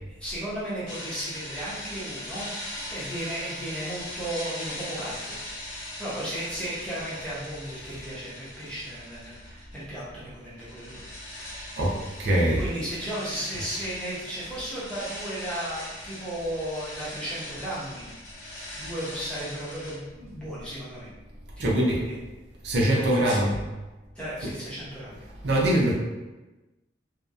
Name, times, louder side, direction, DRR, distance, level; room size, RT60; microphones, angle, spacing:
voice 1, 0.1-2.5 2.7-5.4 6.0-11.0 11.7-11.8 12.5-18.1 18.8-21.1 21.6-22.1 22.8-23.6 24.2-25.3, right 1 dB, 5° left, -10 dB, 0.7 m, -35 dB
sound 1, 0.9-10.0 10.2-20.0, left 1 dB, 80° left, 0.8 m, -40 dB
voice 2, 12.2-12.7 21.6-22.0 22.6-23.6 24.4-24.5 25.4-25.9, right 1 dB, 65° right, -4 dB, 0.5 m, -22 dB
2.7 x 2.0 x 2.3 m, 1.1 s
head